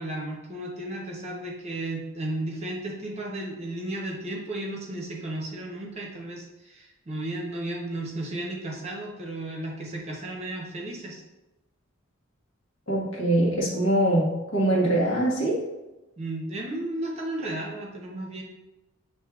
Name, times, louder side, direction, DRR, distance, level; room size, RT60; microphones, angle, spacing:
voice 1, 0.0-11.2 16.2-18.4, right 1 dB, 30° right, -2 dB, 0.8 m, -34 dB
voice 2, 12.9-15.6, right 1 dB, 65° left, -4 dB, 1.3 m, -23 dB
7.3 x 2.6 x 2.3 m, 1.0 s
head